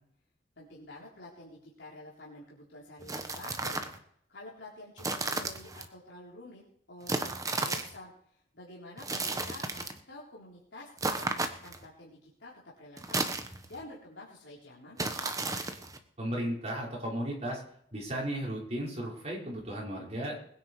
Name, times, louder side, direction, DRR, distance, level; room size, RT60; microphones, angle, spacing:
voice 1, 0.6-3.9 4.3-6.6 6.9-7.3 7.6-8.1 8.5-13.3 13.7-15.0, left 2 dB, 75° left, -5 dB, 3.9 m, -49 dB
sound 1, 3.0-4.0 5.0-5.9 7.1-8.0 9.0-10.0 11.0-11.9 13.0-13.8 15.0-16.0, right 3 dB, 20° right, 1.2 m, -34 dB
voice 2, 16.2-17.6 17.9-20.4, right 1 dB, 35° right, -2 dB, 5.6 m, -35 dB
20.5 x 9.8 x 4.9 m, 0.67 s
head